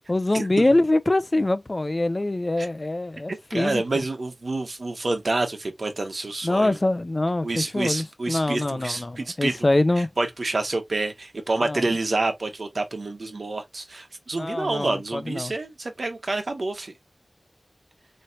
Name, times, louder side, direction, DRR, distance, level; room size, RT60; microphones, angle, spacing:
voice 1, 0.1-3.8 6.4-10.1 11.6-11.8 14.4-15.5, left 2 dB, 40° left, 0.6 m, -24 dB
voice 2, 3.5-6.8 7.4-9.7 10.0-16.9, right 2 dB, 75° right, 1.2 m, -28 dB
4.5 x 3.2 x 2.7 m
wide cardioid pair, 55°, 0 cm